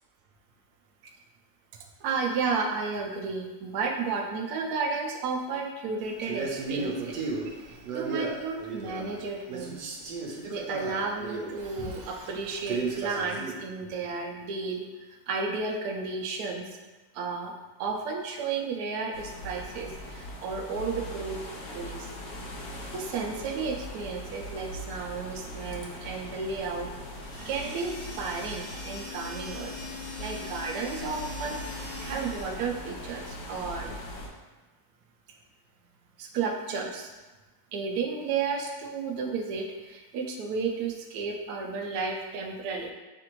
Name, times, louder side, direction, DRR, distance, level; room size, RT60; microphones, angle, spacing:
voice 1, 2.0-7.2 7.6-9.8 10.5-16.8 17.1-17.5 17.8-21.4 21.7-22.1 22.9-26.9 27.5-34.0 36.2-37.1 37.7-42.9, right 4 dB, 70° right, 2 dB, 1.0 m, -33 dB
Male speech man speaking, 6.2-9.2 9.5-13.6, right 4 dB, 90° right, 1.3 m, -35 dB
sound 1, 19.1-34.3, equal, 70° left, 1.5 m, -41 dB
sound 2, 27.0-32.9, left 3 dB, 10° left, 0.7 m, -42 dB
5.7 x 2.5 x 3.0 m, 1.2 s
omnidirectional pair, 1.8 m